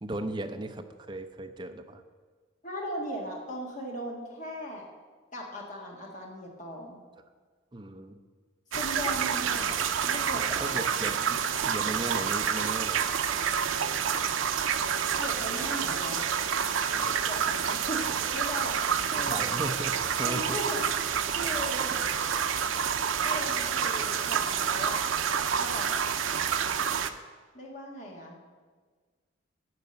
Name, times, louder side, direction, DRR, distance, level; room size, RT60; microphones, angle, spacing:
voice 1, 0.0-2.0 7.7-8.2 10.5-13.0 16.9-17.2 19.3-20.6, right 1 dB, 20° right, 6 dB, 0.6 m, -37 dB
voice 2, 2.6-4.9 5.3-7.0 8.7-9.7 10.1-10.8 15.2-16.2 17.2-18.7 19.1-19.5 20.2-20.8 21.4-22.0 23.2-25.1 25.6-25.9 27.5-28.4, equal, 40° left, -1 dB, 1.6 m, -38 dB
sound 1, 8.7-27.1, right 7 dB, 80° right, 0.6 m, -28 dB
sound 2, 12.5-20.1, right 1 dB, 50° right, 1.1 m, -50 dB
10.5 x 5.1 x 7.9 m, 1.5 s
head